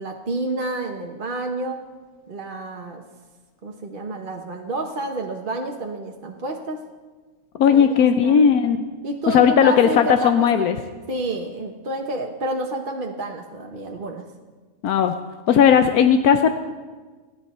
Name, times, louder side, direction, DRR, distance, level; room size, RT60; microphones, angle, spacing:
voice 1, 0.0-1.8 2.3-3.0 3.6-6.8 7.7-8.5 9.0-10.7 11.1-14.3, right 2 dB, 40° right, 1 dB, 1.2 m, -29 dB
voice 2, 7.6-8.8 9.3-10.8 14.8-15.1 15.5-16.5, left 7 dB, 85° left, 8 dB, 1.2 m, -16 dB
28.5 x 10.5 x 4.3 m, 1.4 s
omnidirectional pair, 1.5 m